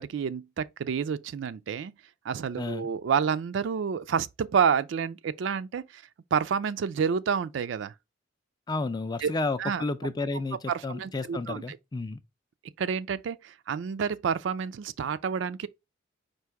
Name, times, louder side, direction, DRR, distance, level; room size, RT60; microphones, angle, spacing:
voice 1, 0.0-1.9 2.2-6.0 6.3-7.9 9.2-9.3 9.6-9.8 10.7-11.8 12.8-15.7, right 6 dB, 65° right, 0.3 m, -29 dB
voice 2, 2.6-2.9 8.7-12.2, left 3 dB, 20° left, 0.4 m, -31 dB
4.6 x 2.5 x 4.6 m
head